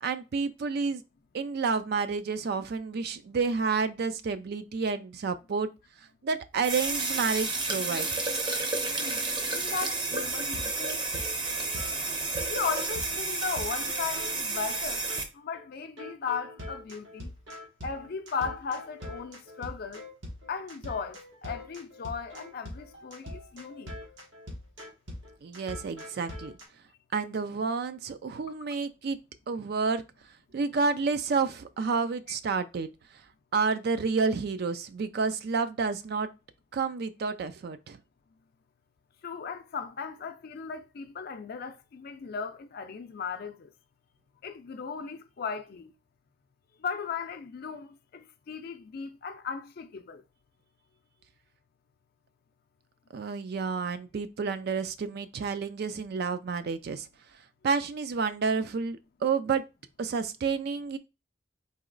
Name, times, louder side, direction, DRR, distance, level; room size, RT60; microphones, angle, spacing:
voice 1, 0.0-1.0 1.3-5.7 6.2-8.1 25.4-26.5 27.1-29.2 29.5-30.0 30.5-32.9 33.5-36.3 36.7-38.0 53.1-57.1 57.6-59.6 60.0-61.0, right 5 dB, 55° right, 0.4 m, -30 dB
sound 1, 6.6-15.2, right 3 dB, 25° right, 0.7 m, -31 dB
voice 2, 9.0-11.0 12.5-15.1 15.3-17.3 17.8-20.0 20.5-23.9 39.2-43.7 44.4-45.9 46.8-50.2, left 6 dB, 55° left, 0.4 m, -36 dB
sound 2, 10.5-14.8 15.1-15.2 15.5-15.6 16.0-26.6, left 1 dB, 80° right, 1.5 m, -43 dB
4.1 x 2.9 x 3.8 m
head